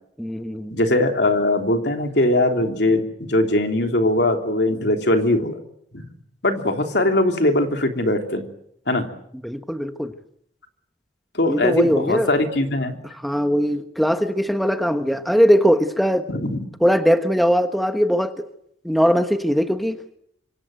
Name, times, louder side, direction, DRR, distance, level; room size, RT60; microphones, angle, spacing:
voice 1, 0.2-0.8 9.4-10.1 11.5-12.3 13.2-16.2 16.8-18.4 18.8-20.0, equal, ahead, 7 dB, 1.3 m, -20 dB
voice 2, 0.7-5.6 5.9-6.1 6.4-8.4 8.9-9.1 11.3-13.0 16.3-16.6, left 1 dB, 70° left, 4 dB, 3.3 m, -20 dB
26.5 x 24.5 x 7.9 m, 0.74 s
head